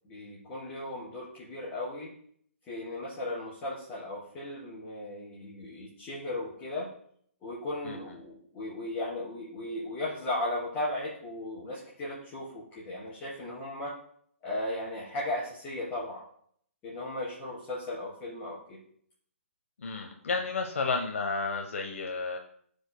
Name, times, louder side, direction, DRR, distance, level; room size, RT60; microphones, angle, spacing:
voice 1, 0.0-2.1 2.7-6.9 7.4-14.0 14.4-16.2 16.8-18.8, left 1 dB, 20° left, -10 dB, 3.1 m, -36 dB
voice 2, 19.8-22.4, left 4 dB, 75° left, 3 dB, 0.9 m, -32 dB
15.0 x 5.1 x 2.2 m, 0.62 s
hypercardioid pair, 155°, 7 cm